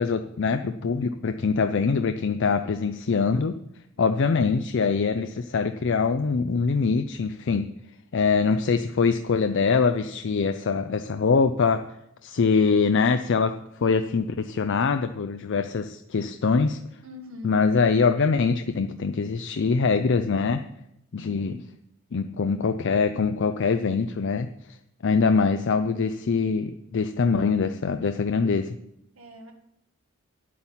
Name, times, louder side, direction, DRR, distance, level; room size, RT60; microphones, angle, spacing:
voice 1, 0.0-3.6 4.0-7.6 8.1-11.8 12.2-13.5 13.8-16.8 17.4-20.6 21.1-21.6 22.1-24.5 25.0-28.7, left 5 dB, 60° left, 8 dB, 0.5 m, -23 dB
voice 2, 17.0-17.5 29.1-29.5, left 1 dB, 75° right, 3 dB, 1.8 m, -41 dB
9.7 x 8.5 x 5.7 m, 0.82 s
head